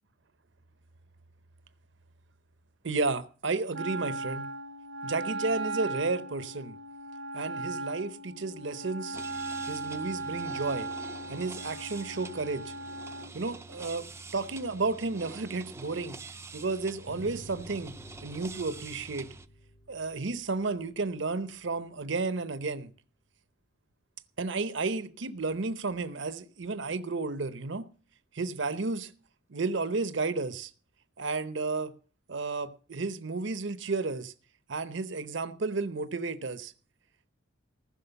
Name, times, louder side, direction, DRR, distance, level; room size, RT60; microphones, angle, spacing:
voice 1, 2.8-4.5 5.0-6.8 7.3-9.2 9.7-10.9 11.3-12.7 13.3-14.1 14.3-16.2 16.5-17.9 18.2-19.3 19.9-22.9 24.4-27.8 28.3-29.1 29.5-30.7 31.2-31.9 32.3-34.3 34.7-36.7, right 3 dB, 65° right, 0.8 m, -32 dB
Wind instrument woodwind instrument, 3.7-13.3, right 2 dB, 85° right, 1.1 m, -37 dB
sound 1, 9.1-19.5, right 3 dB, 15° right, 0.5 m, -46 dB
sound 2, 17.1-22.2, equal, 45° left, 1.4 m, -52 dB
15.0 x 6.1 x 6.9 m
head